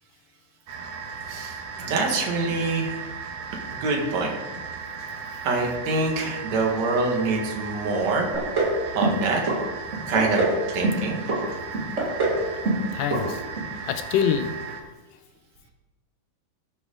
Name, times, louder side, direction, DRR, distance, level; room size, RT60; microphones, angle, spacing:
sound 1, 0.7-14.8, right 5 dB, 80° right, 2.8 m, -36 dB
voice 1, 1.3-3.1 3.7-4.3 5.4-8.3 8.9-9.4 10.1-10.4 10.7-11.2, right 3 dB, 55° right, 2.8 m, -25 dB
sound 2, 8.3-8.8 9.0-9.6 9.9-10.6 10.8-11.4 11.7-12.4 12.6-12.9 13.1-13.2 13.6-13.7, right 3 dB, 30° right, 1.5 m, -24 dB
voice 2, 12.9-13.4 13.9-14.6, left 8 dB, 80° left, 2.2 m, -25 dB
18.5 x 7.3 x 3.9 m
omnidirectional pair, 4.1 m